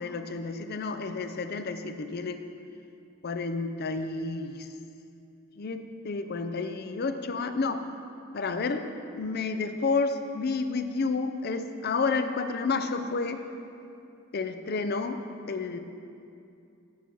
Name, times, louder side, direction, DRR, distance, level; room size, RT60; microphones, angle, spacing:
voice 1, 0.0-2.4 3.2-4.7 5.6-7.8 8.3-8.9 9.1-13.4 14.3-15.2 15.5-15.8, left 4 dB, 45° left, 9 dB, 0.5 m, -30 dB
9.4 x 6.9 x 6.0 m, 2.6 s
head